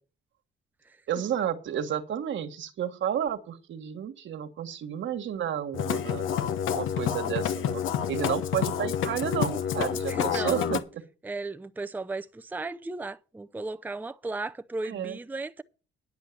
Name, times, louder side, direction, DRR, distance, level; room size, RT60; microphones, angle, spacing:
voice 1, 1.1-6.3 6.7-7.8 8.1-11.0 14.8-15.2, right 9 dB, 70° right, 1.5 m, -31 dB
Musical instrument, 5.7-10.8, left 8 dB, 85° left, 1.0 m, -28 dB
voice 2, 10.1-10.7 11.2-15.6, right 3 dB, 10° right, 0.5 m, -35 dB
10.0 x 6.4 x 7.1 m
cardioid pair, 90°, 20 cm